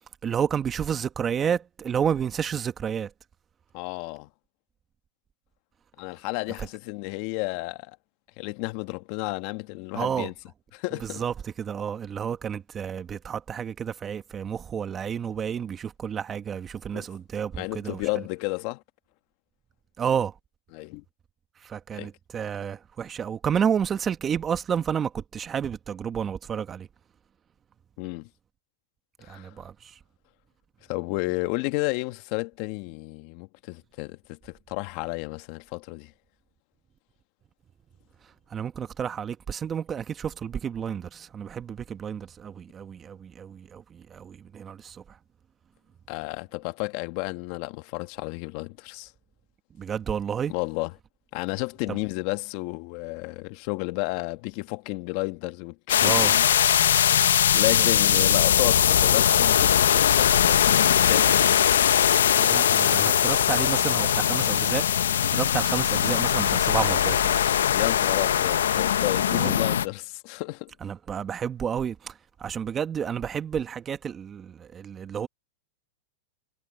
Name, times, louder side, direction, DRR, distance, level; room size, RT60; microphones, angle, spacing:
voice 1, 0.2-3.1 9.9-10.3 11.0-18.0 20.0-20.3 21.6-26.9 29.3-30.0 38.5-45.0 49.8-50.5 51.9-52.0 56.0-56.3 58.2-58.3 62.4-64.8 65.3-67.4 69.3-69.5 70.8-72.1 72.4-75.3, right 8 dB, 20° right, 1.5 m, -30 dB
voice 2, 3.7-4.3 6.0-8.0 8.4-10.3 10.7-11.2 16.9-17.1 17.6-18.8 20.7-21.0 21.9-22.1 28.0-28.3 29.2-29.5 30.9-36.1 46.1-49.1 50.5-50.9 51.3-56.3 57.1-61.5 67.7-70.7, left 23 dB, 50° left, 1.5 m, -32 dB
sound 1, 55.9-69.9, left 9 dB, 90° left, 0.8 m, -21 dB
hypercardioid pair, 135°, 0 cm